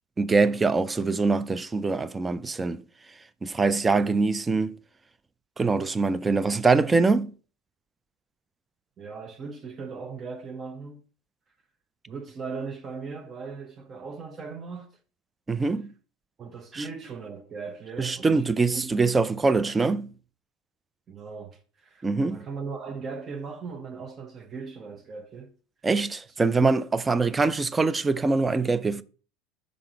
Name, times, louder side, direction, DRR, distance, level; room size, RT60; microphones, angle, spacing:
voice 1, 0.2-2.8 3.4-4.8 5.6-7.3 15.5-15.9 16.7-16.8 18.0-20.1 22.0-22.4 25.8-29.0, right 3 dB, 20° right, 0.4 m, -23 dB
voice 2, 9.0-11.0 12.1-14.9 16.4-18.5 18.7-18.9 21.1-25.5 26.5-26.6, right 4 dB, 35° right, 0.8 m, -38 dB
5.1 x 3.7 x 5.8 m
figure-of-eight pair, 70°, 0 cm